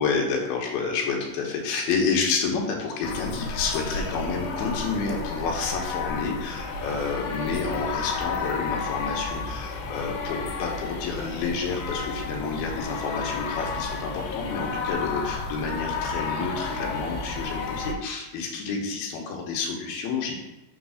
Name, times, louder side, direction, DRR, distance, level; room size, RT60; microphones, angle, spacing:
voice 1, 0.0-20.4, left 4 dB, 70° left, 0 dB, 2.9 m, -29 dB
sound 1, 3.0-17.9, left 4 dB, 90° left, 2.8 m, -32 dB
6.4 x 3.9 x 6.3 m, 0.99 s
omnidirectional pair, 4.7 m